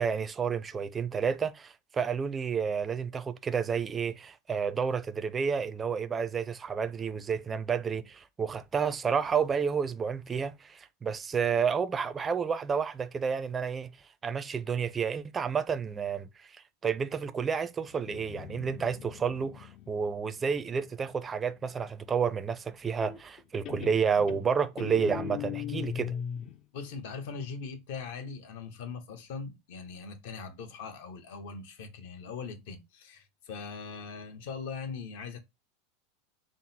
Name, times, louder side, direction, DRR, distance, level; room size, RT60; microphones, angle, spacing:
voice 1, 0.0-13.9 14.2-26.2, right 6 dB, 20° right, 0.4 m, -30 dB
Guitar, 17.9-21.5 23.0-23.4 23.7-26.6, left 6 dB, 40° left, 0.4 m, -39 dB
voice 2, 26.7-35.4, left 5 dB, 65° left, 1.0 m, -41 dB
3.7 x 2.0 x 4.1 m
supercardioid pair, 130°, 0 cm